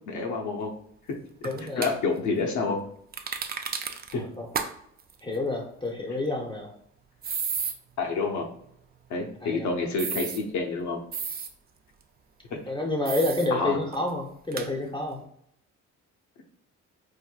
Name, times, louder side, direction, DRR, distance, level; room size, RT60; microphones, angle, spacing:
voice 1, 0.1-0.7 1.6-2.8 4.1-4.2 8.0-8.4 9.1-11.0 13.5-13.8, left 4 dB, 70° left, 2 dB, 0.8 m, -28 dB
voice 2, 1.4-1.9 4.2-4.5 5.2-6.7 9.4-9.7 12.5-15.2, left 2 dB, 15° left, 1 dB, 0.6 m, -29 dB
sound 1, 1.4-1.9 3.1-4.1 4.5-4.7 5.0-5.1 7.2-7.7 10.0-10.4 11.1-11.5 13.1-13.5 13.9-14.0 14.5-14.7, right 6 dB, 30° right, 0.4 m, -32 dB
4.5 x 2.6 x 2.3 m, 0.70 s
cardioid pair, 90°, 30 cm